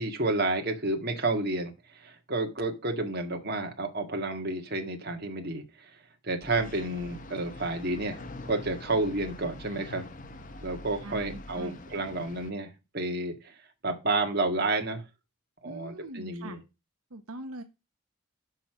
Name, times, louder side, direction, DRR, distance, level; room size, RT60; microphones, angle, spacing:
voice 1, 0.0-5.9 6.2-10.0 10.6-13.5 13.8-15.0 15.6-16.6, right 2 dB, 45° right, 4 dB, 1.7 m, -30 dB
sound 1, 6.4-12.5, left 2 dB, 35° left, 0.8 m, -44 dB
voice 2, 11.0-11.8 15.6-16.6 17.1-17.6, right 1 dB, 90° right, 7 dB, 1.1 m, -42 dB
6.2 x 5.7 x 6.1 m, 0.26 s
head